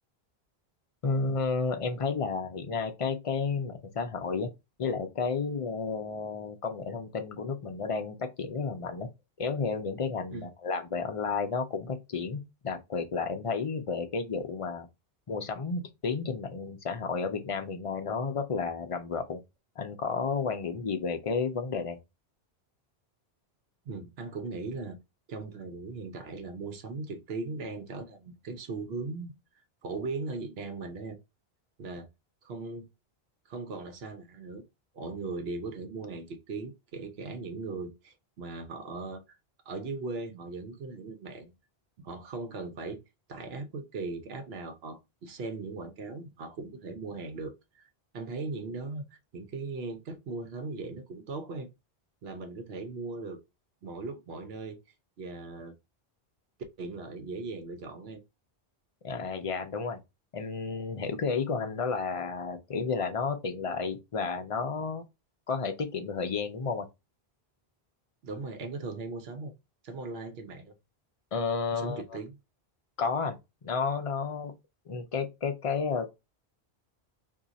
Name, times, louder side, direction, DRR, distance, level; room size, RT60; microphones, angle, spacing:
voice 1, 1.0-4.5 4.8-9.1 9.4-14.9 15.3-19.4 19.8-22.0 59.0-60.0 60.3-65.0 65.5-66.9 71.3-72.0 73.0-73.4 73.6-74.5 74.9-76.1, left 5 dB, 40° left, 0.5 m, -32 dB
voice 2, 23.9-25.0 25.3-29.3 29.8-31.2 31.8-32.1 32.4-32.9 33.5-34.6 34.9-39.4 39.7-41.5 42.0-43.0 43.3-47.8 48.1-49.1 49.3-51.7 52.2-53.4 53.8-54.8 55.2-55.7 56.8-58.2 68.2-69.5 69.8-70.8 71.7-72.4, right 3 dB, 70° right, 1.0 m, -38 dB
2.7 x 2.5 x 3.9 m
omnidirectional pair, 1.1 m